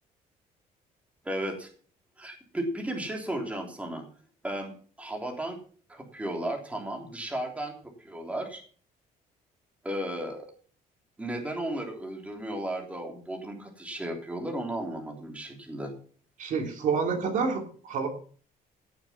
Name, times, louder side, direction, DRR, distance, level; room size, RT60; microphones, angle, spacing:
voice 1, 1.2-1.7 2.2-4.0 4.4-5.6 5.9-8.6 9.8-10.5 11.2-15.9, right 1 dB, 10° right, 1 dB, 3.2 m, -34 dB
voice 2, 16.4-18.1, right 5 dB, 55° right, 3 dB, 3.0 m, -28 dB
16.5 x 7.1 x 5.7 m, 0.43 s
cardioid pair, 140°, 15 cm